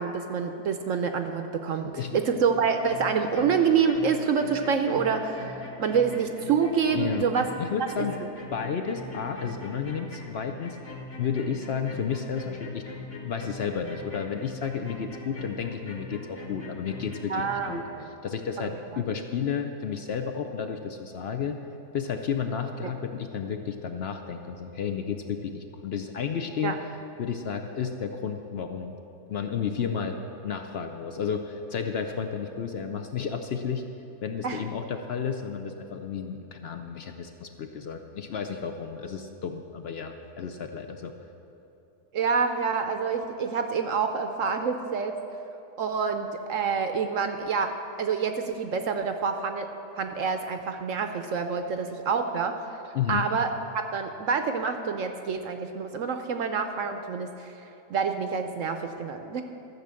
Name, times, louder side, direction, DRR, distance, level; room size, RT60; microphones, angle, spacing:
voice 1, 0.0-7.5 8.0-8.1 17.3-18.1 26.6-26.8 34.4-34.6 42.1-45.2 45.8-49.7 50.0-52.6 53.1-57.5 57.9-59.4, right 6 dB, 65° right, 7 dB, 0.8 m, -27 dB
sound 1, 2.4-17.8, left 2 dB, 35° left, 1.7 m, -42 dB
voice 2, 6.9-7.3 7.6-8.2 8.5-10.8 11.2-12.9 13.2-21.6 21.9-26.7 27.2-29.0 29.3-30.2 30.4-33.8 34.2-41.1 52.9-53.3, left 7 dB, 75° left, 6 dB, 0.5 m, -32 dB
13.5 x 6.6 x 7.5 m, 3.0 s
omnidirectional pair, 1.8 m